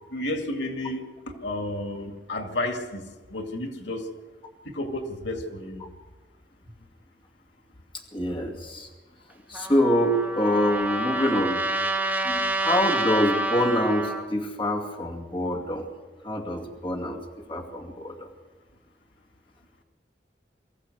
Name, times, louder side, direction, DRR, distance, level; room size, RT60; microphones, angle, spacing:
voice 1, 0.1-1.1 1.4-4.1 4.6-5.8, left 1 dB, 90° left, 5 dB, 2.2 m, -32 dB
voice 2, 7.9-8.9 9.5-11.6 12.2-15.9 16.2-18.2, equal, 25° left, 0 dB, 2.4 m, -26 dB
Trumpet, 9.5-14.2, right 2 dB, 10° right, 2.4 m, -28 dB
24.0 x 14.5 x 7.9 m, 1.3 s
head